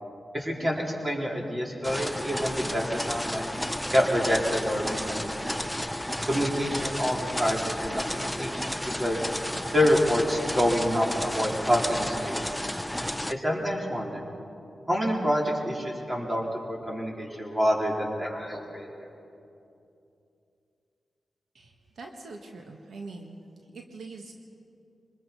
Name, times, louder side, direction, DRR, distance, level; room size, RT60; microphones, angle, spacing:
voice 1, 0.3-3.4 3.9-5.6 6.3-9.2 9.7-12.3 13.3-14.2 14.9-19.1, equal, 25° right, -1 dB, 4.1 m, -27 dB
sound 1, 1.8-13.3, equal, 5° left, 0.6 m, -32 dB
voice 2, 21.5-23.4 23.7-24.4, right 3 dB, 80° right, 2 dB, 1.6 m, -43 dB
24.5 x 21.0 x 5.4 m, 2.7 s
cardioid pair, 70°, 0 cm